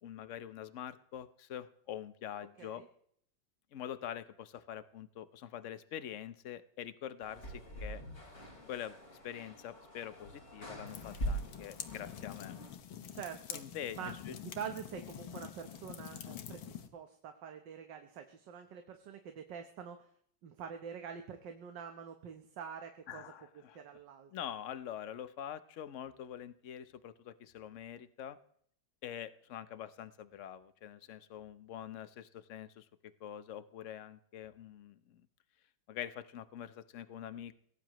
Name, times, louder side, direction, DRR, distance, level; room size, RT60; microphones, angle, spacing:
voice 1, 0.0-2.8 3.7-8.0 8.7-9.0 9.2-12.6 13.5-14.0 14.2-14.4 23.1-23.8 24.3-28.4 29.0-32.9 33.2-35.2 35.9-37.6, left 10 dB, 55° left, 13 dB, 0.9 m, -45 dB
sound 1, 7.2-12.7, right 1 dB, 35° left, 5.5 m, -43 dB
sound 2, 10.9-16.9, left 9 dB, 80° left, 1.9 m, -46 dB
voice 2, 13.1-13.6 14.0-14.1 14.4-20.0 20.4-23.2 23.5-24.3, right 7 dB, 65° right, 6 dB, 1.7 m, -46 dB
23.0 x 17.5 x 3.1 m, 0.64 s
omnidirectional pair, 2.1 m